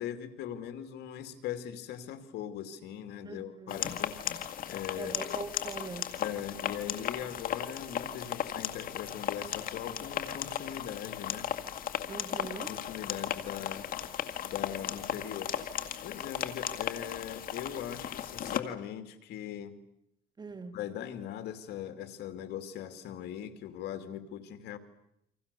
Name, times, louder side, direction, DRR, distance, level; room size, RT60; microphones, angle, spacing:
voice 1, 0.0-4.2 4.7-5.3 6.2-11.5 12.7-13.9 14.4-15.5 16.0-19.8 20.7-24.8, left 10 dB, 80° left, 10 dB, 2.6 m, -40 dB
voice 2, 3.2-3.9 5.0-6.1 12.1-12.7 20.4-20.8, right 4 dB, 25° right, 10 dB, 2.2 m, -42 dB
sound 1, 3.7-18.6, left 10 dB, 55° left, 2.0 m, -36 dB
29.0 x 26.0 x 6.9 m, 0.78 s
cardioid pair, 110°, 17 cm